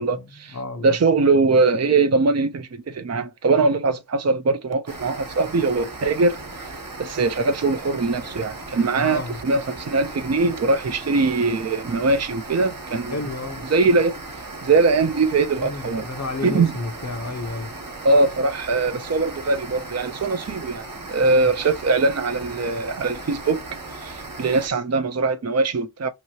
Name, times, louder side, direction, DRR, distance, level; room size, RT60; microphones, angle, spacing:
voice 1, 0.0-0.6 0.8-13.2 13.7-16.1 16.4-16.7 18.0-23.6 23.9-26.1, right 3 dB, 45° right, 0.5 m, -21 dB
voice 2, 0.5-1.0 8.9-9.4 13.1-13.7 15.6-17.7 21.2-21.5, left 2 dB, 50° left, 0.8 m, -31 dB
sound 1, 4.9-24.7, right 2 dB, 65° right, 1.0 m, -37 dB
2.9 x 2.7 x 2.8 m
wide cardioid pair, 45°, 36 cm